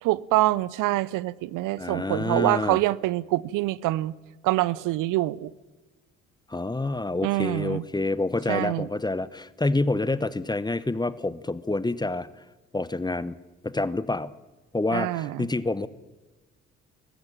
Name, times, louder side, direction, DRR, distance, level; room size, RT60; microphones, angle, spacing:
voice 1, 0.0-4.1 4.4-5.5 7.2-7.9 8.5-8.9 14.9-15.5, right 17 dB, 65° right, 0.6 m, -25 dB
voice 2, 1.8-2.8 6.5-12.3 12.7-13.4 13.6-14.3 14.7-15.9, left 2 dB, 10° left, 0.9 m, -27 dB
19.5 x 15.0 x 8.9 m
hypercardioid pair, 50°, 34 cm